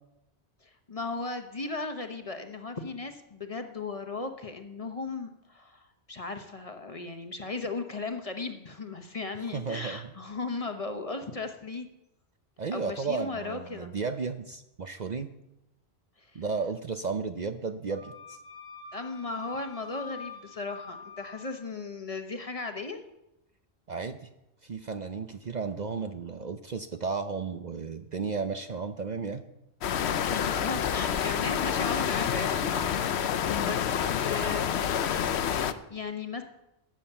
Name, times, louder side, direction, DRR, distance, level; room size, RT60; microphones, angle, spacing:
voice 1, 0.9-11.9 12.7-13.9 16.3-16.4 18.9-23.0 30.3-33.1 33.5-34.8 35.3-36.4, left 3 dB, 35° left, 6 dB, 1.0 m, -36 dB
voice 2, 9.5-10.1 12.6-15.3 16.3-18.4 23.9-24.3 24.6-29.4, right 5 dB, 45° right, 8 dB, 0.7 m, -33 dB
Wind instrument woodwind instrument, 17.9-21.5, left 5 dB, 75° right, 5.6 m, -45 dB
sound 1, 29.8-35.7, left 8 dB, 75° left, 1.0 m, -28 dB
13.0 x 8.8 x 6.9 m, 0.91 s
omnidirectional pair, 1.1 m